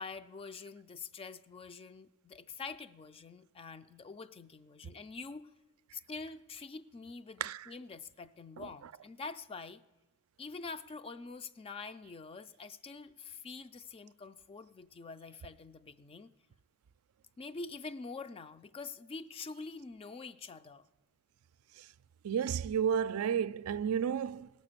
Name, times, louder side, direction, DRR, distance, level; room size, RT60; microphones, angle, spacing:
voice 1, 0.0-5.4 5.9-9.8 10.4-16.3 17.4-20.9, left 4 dB, 25° left, 0.3 m, -46 dB
voice 2, 22.2-24.5, right 8 dB, 80° right, 0.3 m, -32 dB
18.0 x 6.4 x 6.7 m
head